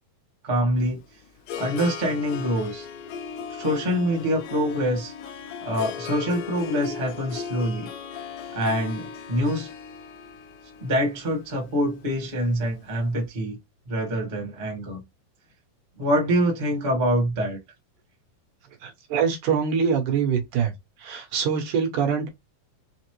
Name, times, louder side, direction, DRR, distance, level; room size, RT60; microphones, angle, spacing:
voice 1, 0.4-1.0 1.6-2.9 3.5-5.1 5.6-7.9 8.5-9.7 10.8-13.6 13.9-15.0 16.0-17.6, equal, 25° right, 1.0 m, -25 dB
Harp, 0.8-13.0, left 6 dB, 75° left, 2.2 m, -38 dB
voice 2, 18.8-20.7 21.0-22.3, right 6 dB, 70° right, 2.5 m, -24 dB
5.7 x 2.0 x 3.0 m
omnidirectional pair, 3.8 m